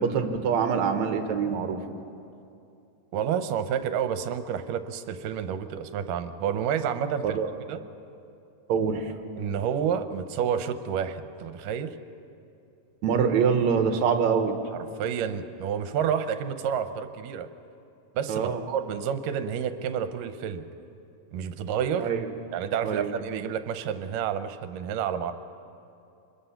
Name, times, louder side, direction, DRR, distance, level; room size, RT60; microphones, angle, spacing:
voice 1, 0.0-1.8 7.2-7.5 8.7-9.1 13.0-14.5 18.3-18.6 22.0-22.2 22.8-23.1, right 6 dB, 65° right, 6 dB, 2.3 m, -24 dB
voice 2, 3.1-7.4 7.7-7.8 9.4-12.0 14.7-17.5 18.2-20.6 21.3-22.1 22.5-25.3, right 8 dB, 80° right, 9 dB, 2.5 m, -29 dB
26.5 x 22.0 x 5.8 m, 2.6 s
omnidirectional pair, 3.9 m